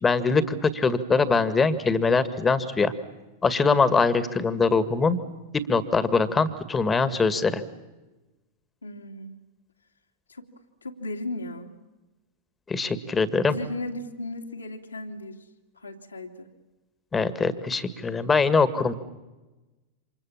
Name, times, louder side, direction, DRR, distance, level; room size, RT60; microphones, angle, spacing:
voice 1, 0.0-2.9 3.4-5.2 5.5-7.6 12.7-13.6 17.1-18.9, left 4 dB, 15° left, 14 dB, 1.9 m, -22 dB
voice 2, 8.8-9.4 10.3-10.5 10.8-11.8 13.5-15.4 15.7-16.5, left 1 dB, 80° left, 2 dB, 2.7 m, -36 dB
28.5 x 26.5 x 7.4 m, 1.1 s
figure-of-eight pair, 90°, 0 cm